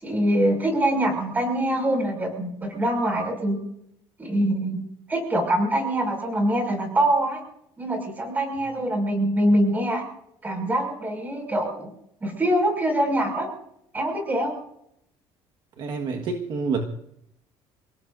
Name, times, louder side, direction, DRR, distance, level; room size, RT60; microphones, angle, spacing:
voice 1, 0.0-3.6 4.2-4.8 5.1-7.4 7.8-10.1 10.4-11.9 12.2-13.5 13.9-14.5, right 1 dB, 15° right, 3 dB, 5.8 m, -24 dB
voice 2, 15.8-16.8, right 4 dB, 45° right, 4 dB, 1.6 m, -27 dB
28.5 x 17.5 x 2.6 m, 0.75 s
cardioid pair, 170°, 11 cm